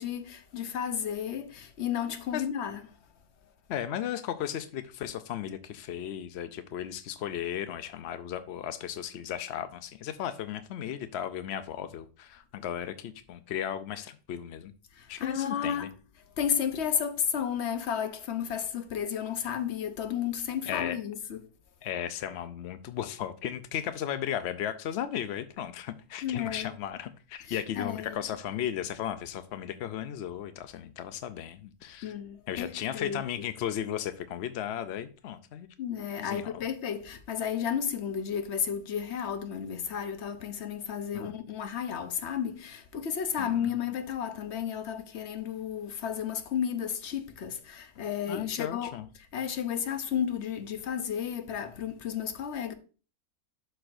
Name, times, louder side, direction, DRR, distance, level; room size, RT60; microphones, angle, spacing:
voice 1, 0.0-2.8 14.9-16.0 16.4-21.4 26.2-26.7 27.4-28.2 32.0-33.2 35.8-48.9 49.3-52.7, left 8 dB, 55° left, 0.9 m, -32 dB
voice 2, 3.7-14.7 15.1-15.9 20.6-21.0 21.8-32.1 32.5-35.7 36.2-36.6 41.1-41.3 43.4-43.9 48.3-49.1, left 10 dB, 75° left, 0.6 m, -35 dB
11.5 x 4.5 x 2.6 m
omnidirectional pair, 1.7 m